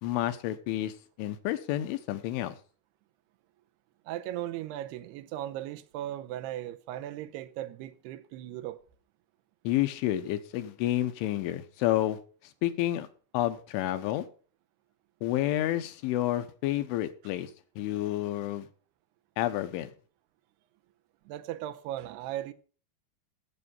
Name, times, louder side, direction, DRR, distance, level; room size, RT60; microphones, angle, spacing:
voice 1, 0.0-2.6 9.7-12.2 12.6-13.1 13.3-14.3 15.2-17.5 17.8-18.7 19.4-19.9, left 14 dB, 80° left, 3.5 m, -30 dB
voice 2, 4.1-8.8 21.3-22.5, right 13 dB, 80° right, 2.5 m, -37 dB
16.0 x 7.6 x 5.5 m
omnidirectional pair, 5.5 m